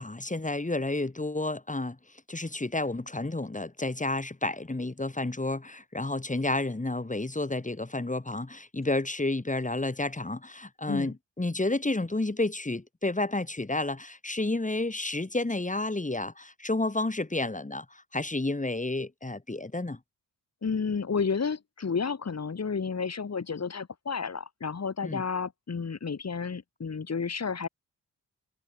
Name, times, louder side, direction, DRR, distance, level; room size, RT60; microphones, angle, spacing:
voice 1, 0.0-2.0 2.3-20.0 25.0-25.2, left 2 dB, 20° left, 3.1 m, -31 dB
voice 2, 20.6-27.7, left 5 dB, 40° left, 2.5 m, -31 dB
hypercardioid pair, 40°, 42 cm